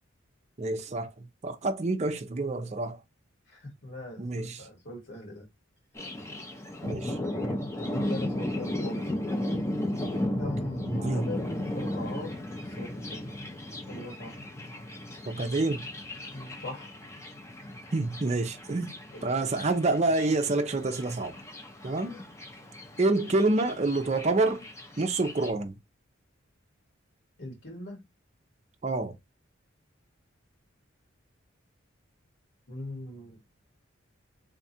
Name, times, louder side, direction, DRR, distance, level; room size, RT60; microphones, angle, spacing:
voice 1, 0.6-3.0 4.2-4.6 6.8-7.2 10.9-11.3 15.3-15.8 17.9-18.9 19.2-21.3 21.8-22.2 23.0-24.6 25.0-25.7 28.8-29.1, right 2 dB, 35° right, 0.5 m, -27 dB
voice 2, 3.5-5.5 7.1-9.2 10.4-12.4 12.6-13.3 13.9-14.4 16.3-16.9 18.7-19.3 22.0-22.2 27.4-28.0 32.7-33.4, left 1 dB, 70° left, 1.9 m, -40 dB
Thunder, 5.9-25.5, left 1 dB, 15° left, 0.6 m, -35 dB
3.5 x 2.4 x 4.1 m
head